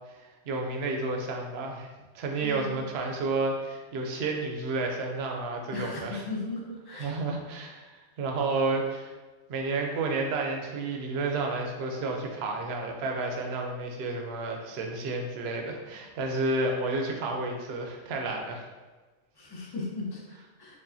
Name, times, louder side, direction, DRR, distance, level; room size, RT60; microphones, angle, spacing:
voice 1, 0.2-6.2 6.9-9.1 9.5-18.7, right 3 dB, 65° right, 2 dB, 0.8 m, -31 dB
voice 2, 2.4-2.8 5.7-7.1 19.4-20.8, left 2 dB, 30° left, -2 dB, 0.5 m, -37 dB
4.8 x 2.4 x 2.6 m, 1.3 s
omnidirectional pair, 1.2 m